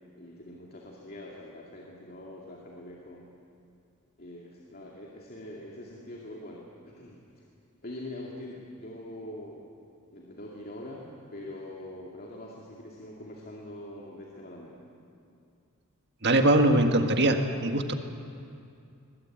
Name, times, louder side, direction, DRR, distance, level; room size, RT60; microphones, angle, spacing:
voice 1, 0.2-3.3 4.2-7.4 7.8-9.7 10.1-14.8, left 1 dB, 45° left, -3 dB, 2.6 m, -43 dB
voice 2, 16.2-17.9, right 1 dB, 50° right, 6 dB, 1.7 m, -22 dB
22.0 x 21.5 x 8.8 m, 2.5 s
head